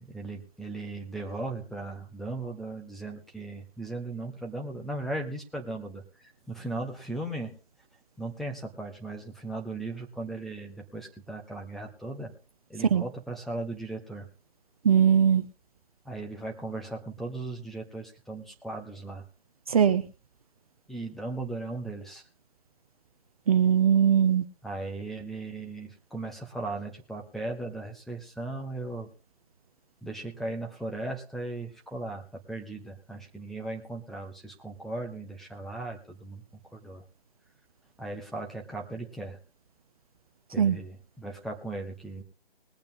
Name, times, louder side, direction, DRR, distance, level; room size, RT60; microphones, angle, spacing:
voice 1, 0.0-6.0 6.5-7.6 8.2-12.3 12.7-14.3 16.0-19.2 20.9-22.2 24.6-29.1 30.0-32.2 32.5-36.4 36.7-37.0 38.0-39.4 40.5-42.2, right 2 dB, ahead, 1 dB, 1.0 m, -37 dB
voice 2, 14.8-15.4 19.7-20.0 23.5-24.4 40.6-40.8, right 8 dB, 35° right, 11 dB, 0.7 m, -20 dB
20.5 x 8.6 x 3.9 m, 0.34 s
figure-of-eight pair, 145°, 31 cm